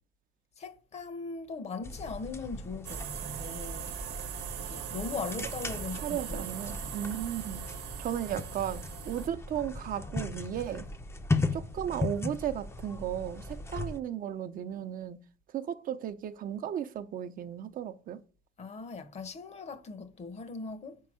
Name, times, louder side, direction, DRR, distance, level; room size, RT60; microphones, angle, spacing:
voice 1, 0.6-4.0 4.5-6.9 18.6-21.0, left 4 dB, 40° left, 0.9 m, -40 dB
sound 1, 1.8-14.0, left 2 dB, 15° left, 0.6 m, -37 dB
sound 2, 2.8-9.3, right 9 dB, 80° right, 0.9 m, -40 dB
voice 2, 6.0-7.7 8.0-10.9 11.5-15.2 15.5-18.2, right 10 dB, 55° right, 0.7 m, -35 dB
5.2 x 4.7 x 6.2 m
cardioid pair, 110°, 17 cm